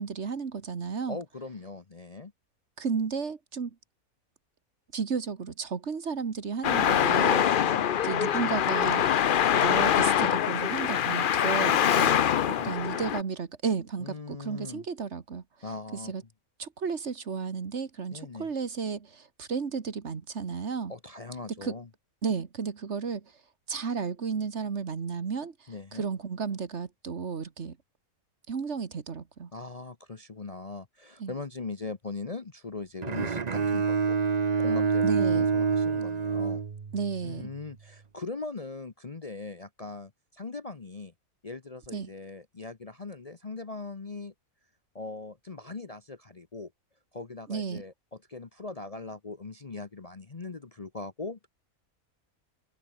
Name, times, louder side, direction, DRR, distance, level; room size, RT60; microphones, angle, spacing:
voice 1, 0.0-1.2 2.8-3.7 4.9-7.5 8.0-9.1 9.5-12.4 12.6-15.4 16.0-16.2 16.6-20.9 21.6-21.8 22.2-23.2 23.7-27.8 28.5-29.5 31.2-31.3 35.0-35.5 36.9-37.5 41.9-42.1 47.5-47.8, right 5 dB, 50° right, 1.7 m, -33 dB
voice 2, 1.1-2.3 7.4-8.1 12.5-13.0 14.0-14.8 15.6-16.1 18.1-18.5 20.9-21.9 25.7-26.1 29.5-34.2 34.6-36.6 37.2-41.1 41.4-44.3 44.9-46.7 47.1-51.5, left 3 dB, 30° left, 0.9 m, -40 dB
Traffic noise roadway noise, 6.6-13.2, left 9 dB, 55° left, 0.6 m, -24 dB
Bowed string instrument, 33.0-37.2, right 5 dB, 35° right, 0.9 m, -27 dB
omnidirectional pair, 1.5 m